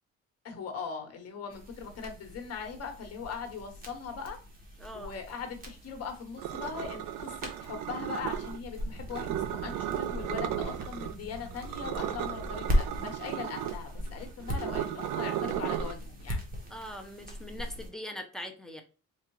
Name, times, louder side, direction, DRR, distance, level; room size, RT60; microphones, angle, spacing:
voice 1, 0.4-4.4 4.9-16.4, left 6 dB, 50° left, 4 dB, 1.2 m, -40 dB
sound 1, 1.5-17.9, equal, 30° right, 1.2 m, -38 dB
voice 2, 4.8-5.1 16.7-18.8, equal, ahead, 4 dB, 0.6 m, -41 dB
sound 2, 6.4-8.6 9.1-11.1 11.5-15.9, right 12 dB, 70° right, 0.5 m, -35 dB
4.6 x 2.4 x 3.0 m, 0.34 s
cardioid pair, 120°, 31 cm